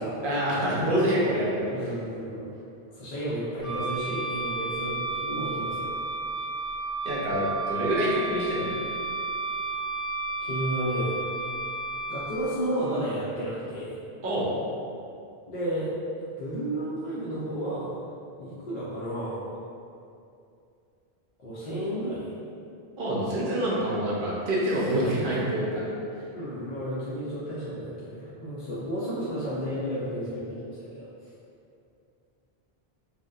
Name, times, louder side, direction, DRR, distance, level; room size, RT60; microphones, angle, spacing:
voice 1, 0.2-1.9 7.0-8.7 14.2-14.5 23.0-25.8, equal, 65° right, -6 dB, 0.7 m, -26 dB
voice 2, 1.6-2.5 2.9-5.9 10.4-11.2 12.1-14.0 15.5-15.9 16.4-17.9 18.4-19.5 21.4-22.3 26.3-31.1, right 1 dB, 55° left, -10 dB, 0.6 m, -32 dB
Wind instrument woodwind instrument, 3.6-12.4, right 3 dB, ahead, 1.2 m, -32 dB
2.6 x 2.1 x 2.3 m, 2.5 s
omnidirectional pair, 1.0 m